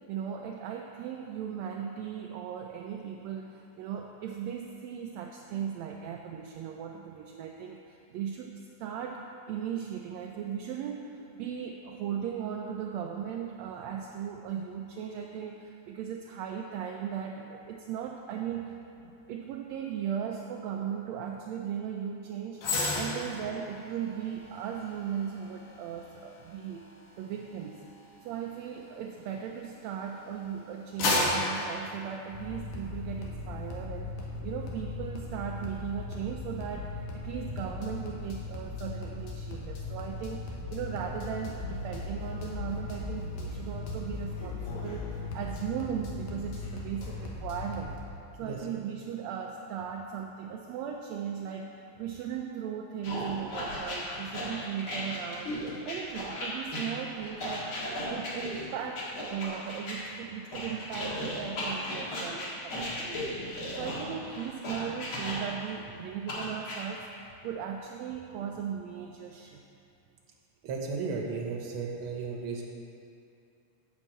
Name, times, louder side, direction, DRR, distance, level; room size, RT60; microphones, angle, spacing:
voice 1, 0.1-8.5 8.8-26.9 27.2-27.9 28.2-34.1 34.4-45.1 45.3-48.0 48.4-55.5 55.8-57.7 58.1-67.1 67.4-69.6, right 8 dB, 80° right, 1 dB, 1.6 m, -37 dB
sound 1, 22.6-30.0 30.5-32.8 33.2-33.4, left 2 dB, 90° left, 3.0 m, -34 dB
sound 2, 32.3-48.0, left 3 dB, 70° left, 2.4 m, -38 dB
sound 3, 53.0-60.0 60.5-65.7 66.3-66.8, left 1 dB, 45° left, 2.4 m, -36 dB
voice 2, 70.6-72.6, right 4 dB, 60° right, -1 dB, 1.6 m, -34 dB
8.2 x 5.4 x 7.4 m, 2.6 s
omnidirectional pair, 3.5 m